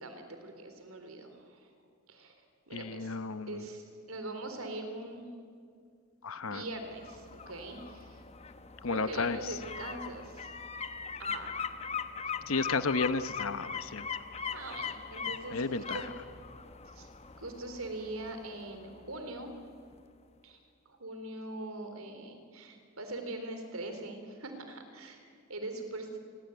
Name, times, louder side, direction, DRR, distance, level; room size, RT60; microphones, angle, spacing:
voice 1, 0.0-1.7 2.1-2.4 2.7-3.2 3.5-5.3 6.4-8.2 8.9-10.5 11.2-11.6 14.5-16.1 16.9-17.1 17.4-19.5 20.4-20.6 20.9-26.2, right 2 dB, 85° right, 7 dB, 3.9 m, -42 dB
voice 2, 2.7-3.5 6.2-6.6 8.8-9.4 12.5-14.1 15.5-16.0, left 4 dB, 75° left, 12 dB, 1.0 m, -32 dB
sound 1, 6.7-19.6 19.9-20.0, left 6 dB, 30° left, 1.0 m, -41 dB
29.0 x 22.0 x 9.4 m, 2.3 s
head